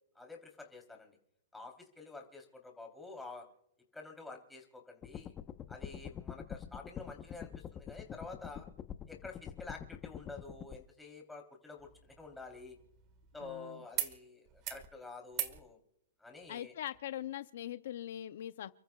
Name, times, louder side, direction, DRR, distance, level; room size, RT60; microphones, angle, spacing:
voice 1, 0.1-1.2 1.5-3.4 3.9-5.3 5.7-8.7 9.1-12.8 13.3-15.8 16.2-16.7, left 3 dB, 5° left, 1 dB, 3.4 m, -49 dB
sound 1, 5.0-10.8, left 9 dB, 20° left, 1.0 m, -45 dB
sound 2, 11.8-13.5 13.9-14.2 14.5-14.9 15.3-15.6 16.9-17.0, right 14 dB, 35° right, 1.6 m, -41 dB
voice 2, 13.4-13.8 16.5-18.7, left 11 dB, 65° left, 12 dB, 0.7 m, -42 dB
30.0 x 14.0 x 2.4 m, 0.84 s
hypercardioid pair, 145°, 0 cm